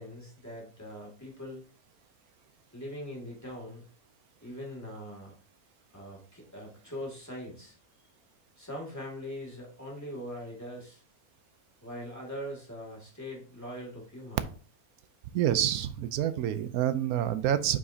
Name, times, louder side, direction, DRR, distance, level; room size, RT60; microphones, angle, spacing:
voice 1, 0.0-1.6 2.7-3.9 4.4-5.3 5.9-7.7 8.6-11.0 11.8-14.4, equal, 10° left, -2 dB, 2.3 m, -41 dB
voice 2, 15.3-17.8, right 11 dB, 85° right, 12 dB, 1.1 m, -27 dB
8.4 x 4.9 x 2.7 m, 0.42 s
omnidirectional pair, 1.5 m